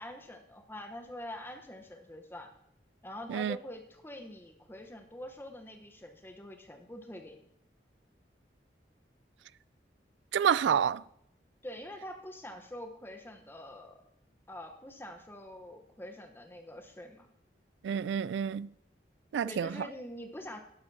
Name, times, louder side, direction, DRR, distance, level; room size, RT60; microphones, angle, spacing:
voice 1, 0.0-2.5 3.0-7.5 11.6-14.0 14.5-17.3 19.4-20.6, left 1 dB, 15° left, 0.9 m, -45 dB
voice 2, 10.3-11.0 17.8-18.7 19.3-19.7, right 8 dB, 85° right, 0.3 m, -28 dB
12.0 x 11.0 x 2.7 m
head